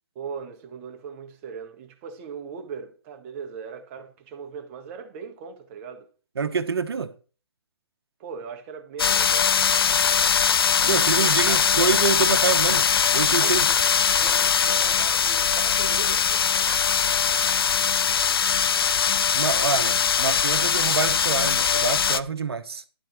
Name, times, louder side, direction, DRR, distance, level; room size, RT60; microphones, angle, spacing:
voice 1, 0.2-6.1 8.2-9.5 10.8-11.9 13.4-13.8 14.2-16.8, right 6 dB, 30° right, 1.6 m, -39 dB
voice 2, 6.4-7.1 10.9-13.7 19.3-22.8, right 5 dB, 70° right, 1.2 m, -26 dB
sound 1, 9.0-22.2, left 7 dB, 65° left, 0.6 m, -21 dB
12.0 x 4.5 x 7.4 m
hypercardioid pair, 145°, 13 cm